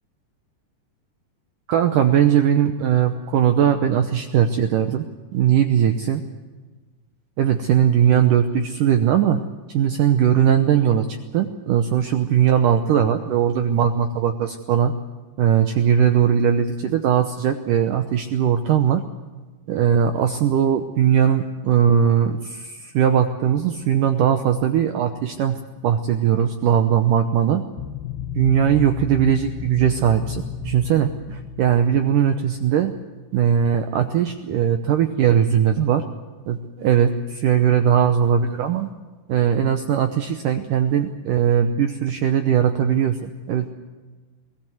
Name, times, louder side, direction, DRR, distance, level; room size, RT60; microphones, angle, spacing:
voice 1, 1.7-5.0 5.3-6.2 7.4-9.4 9.7-14.9 15.4-19.0 19.7-27.6 28.4-32.9 33.3-36.0 36.5-38.9 39.3-43.7, right 9 dB, 75° right, 7 dB, 1.9 m, -19 dB
sound 1, 27.8-32.4, left 9 dB, 75° left, 2.8 m, -32 dB
22.5 x 18.0 x 7.8 m, 1.3 s
omnidirectional pair, 4.9 m